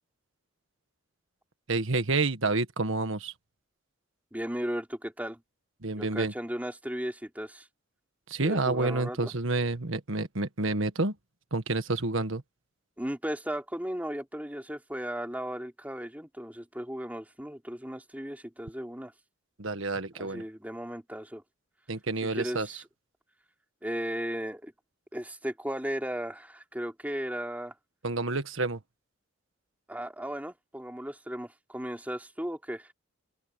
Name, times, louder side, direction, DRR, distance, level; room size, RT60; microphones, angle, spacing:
voice 1, 1.7-3.3 5.8-6.3 8.3-11.1 11.5-12.4 19.6-20.4 21.9-22.8 28.0-28.8, right 3 dB, 65° right, 1.6 m, -29 dB
voice 2, 4.3-5.4 6.0-7.7 8.4-9.3 13.0-19.1 20.2-21.4 22.3-22.8 23.8-24.7 25.1-27.7 29.9-32.9, equal, 10° right, 3.2 m, -36 dB
open air
head